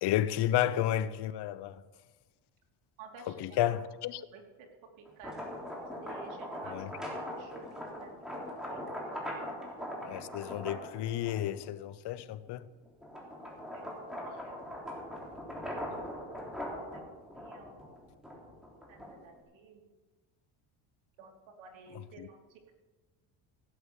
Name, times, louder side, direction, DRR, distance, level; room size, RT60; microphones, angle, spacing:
voice 1, 0.0-1.8 3.3-4.3 6.7-6.9 10.0-12.7 21.9-22.3, left 12 dB, 55° left, 0.8 m, -32 dB
voice 2, 3.0-3.3 3.6-3.7 4.3-4.7 5.0-5.5 6.0-7.0 7.4-8.2 13.7-14.0 14.3-14.8 16.3-16.6 16.9-17.0 17.3-18.2 18.9-19.9 21.2-22.8, right 4 dB, 70° right, 3.2 m, -53 dB
sound 1, 5.1-11.7 12.2-19.4, equal, ahead, 3.5 m, -41 dB
16.5 x 8.2 x 7.2 m
cardioid pair, 130°, 48 cm